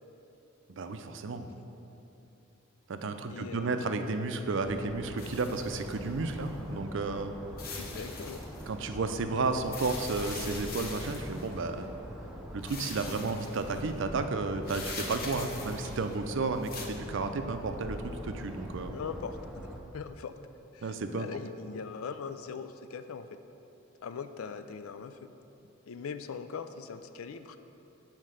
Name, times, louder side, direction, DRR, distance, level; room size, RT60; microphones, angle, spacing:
voice 1, 0.8-1.5 2.9-7.4 8.7-11.9 12.5-19.0 20.8-21.3, right 3 dB, 60° right, 8 dB, 0.5 m, -32 dB
voice 2, 3.3-3.9 7.8-8.4 18.9-19.4 19.9-20.3 20.7-23.4 24.0-25.3 25.9-27.6, left 6 dB, 85° left, 10 dB, 0.4 m, -41 dB
sound 1, 4.6-19.8, equal, 5° right, 0.6 m, -43 dB
sound 2, 5.2-6.5 7.6-8.7 9.6-11.6 12.6-13.8 14.6-16.2 16.6-16.9, left 4 dB, 45° left, 0.8 m, -43 dB
7.5 x 4.5 x 6.3 m, 2.9 s
head